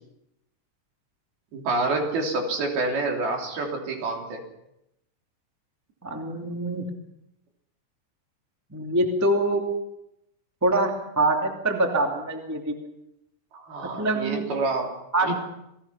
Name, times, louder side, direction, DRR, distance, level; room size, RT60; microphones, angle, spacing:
voice 1, 1.5-4.4 13.5-14.9 15.2-15.3, right 3 dB, 55° right, 1 dB, 4.8 m, -27 dB
voice 2, 6.0-6.9 8.7-9.6 10.6-12.8 14.0-14.4 15.1-15.3, right 1 dB, 10° right, 2 dB, 0.7 m, -24 dB
28.0 x 18.5 x 5.7 m, 0.83 s
omnidirectional pair, 5.7 m